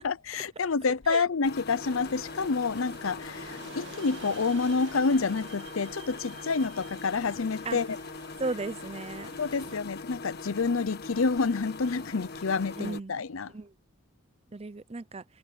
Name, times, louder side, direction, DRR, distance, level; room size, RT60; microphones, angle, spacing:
voice 1, 0.0-8.0 9.4-13.5, left 4 dB, 70° left, 0.7 m, -28 dB
sound 1, 1.4-13.0, left 3 dB, 50° left, 1.5 m, -42 dB
sound 2, 1.8-9.8, right 4 dB, 60° right, 2.1 m, -48 dB
voice 2, 8.4-9.3 12.8-13.2 13.5-13.7 14.5-15.2, right 3 dB, 30° right, 0.5 m, -35 dB
head